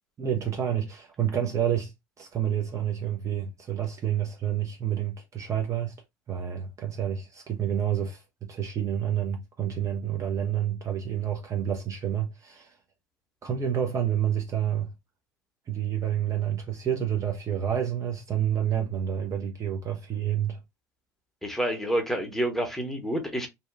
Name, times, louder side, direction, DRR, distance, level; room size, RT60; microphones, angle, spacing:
voice 1, 0.2-1.9 2.2-5.9 6.3-8.2 8.5-12.7 13.4-14.9 15.7-20.6, right 9 dB, 35° right, 0.6 m, -29 dB
voice 2, 21.4-23.5, right 1 dB, 5° left, 0.9 m, -28 dB
2.7 x 2.2 x 2.4 m
hypercardioid pair, 65°, 10 cm